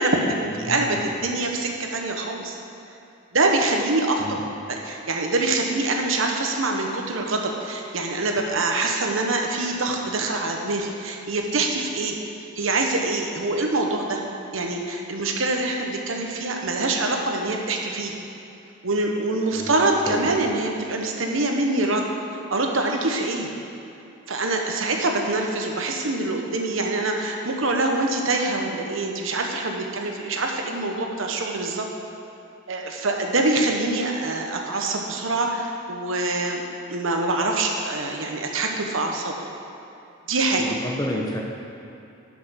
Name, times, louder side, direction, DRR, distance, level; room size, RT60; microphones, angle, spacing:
voice 1, 0.0-2.6 3.3-4.3 4.7-12.2 12.6-14.2 14.5-18.1 18.8-22.1 22.5-23.5 24.3-31.8 32.7-36.6 36.9-39.3 40.3-40.6, right 2 dB, 80° right, 2 dB, 1.1 m, -25 dB
voice 2, 0.5-1.1 4.2-4.4 19.5-20.3 40.6-41.4, equal, 20° left, 0 dB, 0.9 m, -31 dB
10.5 x 5.9 x 5.8 m, 2.8 s
head